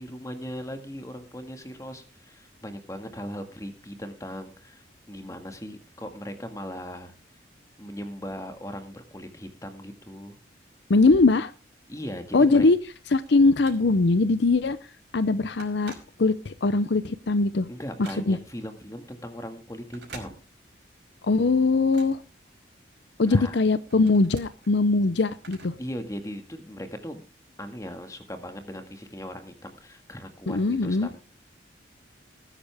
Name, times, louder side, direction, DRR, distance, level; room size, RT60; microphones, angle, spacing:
voice 1, 0.0-7.1 7.8-10.4 11.9-12.7 17.7-20.4 23.3-23.6 25.8-27.2 27.6-31.2, equal, 15° left, 7 dB, 1.8 m, -38 dB
voice 2, 10.9-11.5 12.3-12.8 13.1-14.8 15.1-15.9 16.2-17.7 18.3-18.4 21.2-22.2 23.2-25.7 30.5-31.1, left 3 dB, 65° left, 14 dB, 0.6 m, -21 dB
Telephone, 12.8-14.2 14.7-14.9 15.2-16.7 17.1-18.6 19.8-20.9 21.2-23.0 23.4-25.9 26.2-26.3 27.2-27.3, right 4 dB, 65° right, 5.4 m, -49 dB
19.5 x 10.0 x 3.5 m, 0.35 s
head